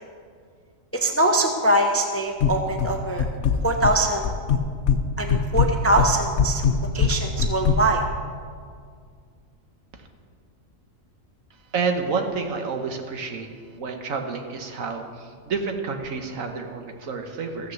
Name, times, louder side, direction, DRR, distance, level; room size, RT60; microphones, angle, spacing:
voice 1, 0.9-3.3 3.6-4.2 5.2-6.6 6.9-8.0, right 1 dB, 15° left, 4 dB, 0.6 m, -22 dB
sound 1, 2.4-2.9 3.2-4.0 4.2-5.0 5.3-7.8, left 6 dB, 60° left, 0.9 m, -21 dB
voice 2, 11.7-13.5 13.7-17.7, right 4 dB, 75° right, 4 dB, 1.5 m, -29 dB
14.5 x 6.4 x 7.1 m, 2.1 s
omnidirectional pair, 1.4 m